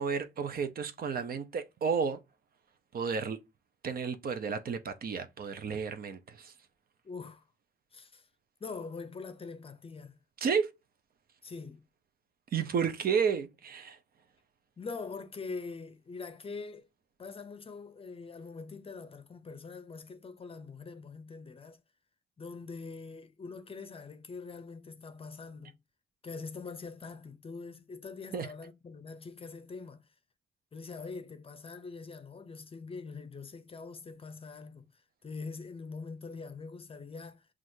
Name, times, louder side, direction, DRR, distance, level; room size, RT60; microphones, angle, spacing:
voice 1, 0.0-2.2 2.9-3.4 3.8-6.5 10.4-10.7 12.5-14.0 28.3-28.5, right 6 dB, 50° right, 0.6 m, -32 dB
voice 2, 7.0-7.4 7.9-8.3 8.6-10.2 11.4-11.8 14.8-16.9 17.2-21.8 22.4-25.8 26.2-30.1 30.7-34.9 35.2-37.5, left 4 dB, 30° left, 0.6 m, -43 dB
6.0 x 2.5 x 2.7 m
cardioid pair, 90°, 20 cm